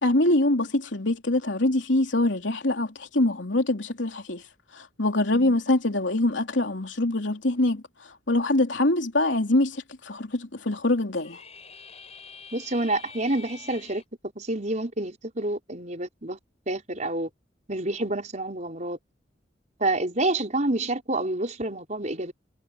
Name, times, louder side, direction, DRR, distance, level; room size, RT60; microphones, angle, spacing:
voice 1, 0.0-4.4 4.7-11.4, left 2 dB, 85° left, 3.2 m, -24 dB
sound 1, 11.1-14.0, left 5 dB, 35° left, 6.5 m, -46 dB
voice 2, 12.5-14.0 14.3-16.4 16.7-17.3 17.7-19.0 19.8-22.3, right 2 dB, 40° right, 5.0 m, -28 dB
head